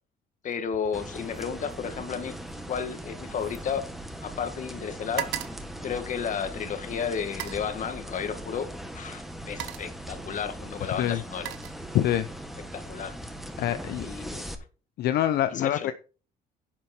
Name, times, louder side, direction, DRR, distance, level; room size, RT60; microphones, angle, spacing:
voice 1, 0.4-2.4 2.7-3.9 4.2-5.3 5.8-8.7 8.9-11.5 12.7-13.1 14.0-14.4 15.5-15.9, left 7 dB, 50° left, 2.0 m, -32 dB
sound 1, 0.7-1.1 1.3-4.5 4.7-6.6 7.2-7.7 8.8-8.9 9.3-10.0 10.9-12.3 12.7-13.0, right 13 dB, 85° right, 1.2 m, -40 dB
sound 2, 0.9-14.5, right 1 dB, ahead, 1.9 m, -40 dB
voice 2, 11.9-12.3 13.6-14.1 15.0-15.9, left 12 dB, 70° left, 0.8 m, -25 dB
11.0 x 7.5 x 4.5 m
cardioid pair, 110°, 17 cm